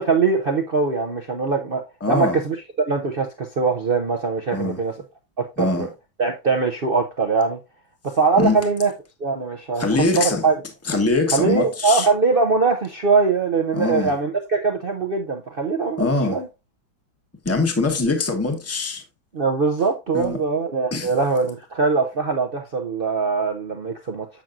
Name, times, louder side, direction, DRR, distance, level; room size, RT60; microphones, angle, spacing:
voice 1, 0.0-4.9 5.4-5.9 6.2-7.6 8.0-8.9 9.2-9.8 10.2-10.6 11.3-16.5 19.3-24.3, right 4 dB, 65° right, 0.5 m, -22 dB
voice 2, 2.0-2.4 4.5-4.8 5.6-5.9 8.4-8.5 9.8-10.4 10.9-12.1 13.7-14.1 16.0-16.4 17.4-19.0 20.1-20.4 20.9-21.1, left 3 dB, 10° left, 0.8 m, -22 dB
7.3 x 7.3 x 2.5 m
omnidirectional pair, 2.1 m